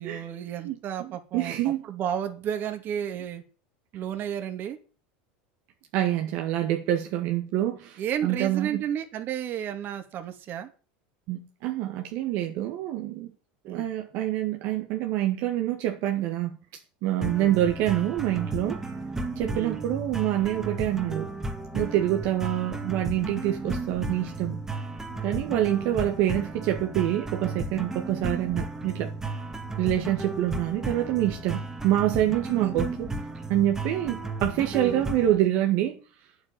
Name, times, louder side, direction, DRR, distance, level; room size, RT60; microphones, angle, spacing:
voice 1, 0.0-3.4 3.9-4.8 8.0-10.7 13.6-13.8 17.2-17.5 19.5-19.9 32.6-32.8 34.8-35.0, right 9 dB, 40° right, 2.6 m, -32 dB
voice 2, 0.6-1.8 5.9-8.8 11.3-13.3 13.7-16.6 17.0-18.8 19.4-21.3 21.7-24.6 25.2-29.1 29.8-33.1 33.5-36.0, right 13 dB, 60° right, 1.9 m, -26 dB
sound 1, 17.2-35.4, right 2 dB, 10° right, 2.2 m, -34 dB
9.7 x 8.4 x 8.8 m
supercardioid pair, 125°, 5 cm